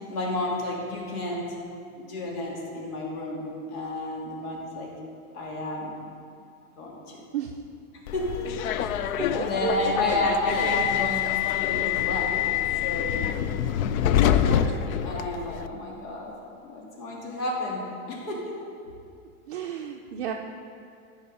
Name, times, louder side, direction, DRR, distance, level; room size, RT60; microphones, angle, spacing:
voice 1, 0.1-1.5 2.0-4.9 5.3-6.0 6.8-7.2 8.1-12.6 12.8-13.4 14.0-16.3 16.6-18.4, left 2 dB, 85° left, -3 dB, 2.9 m, -31 dB
Subway metro underground, 8.1-15.7, left 10 dB, 70° left, 0.6 m, -26 dB
voice 2, 9.4-10.0 19.5-20.3, right 10 dB, 40° right, 1 dB, 0.4 m, -31 dB
14.0 x 5.6 x 5.5 m, 2.4 s
supercardioid pair, 165°, 44 cm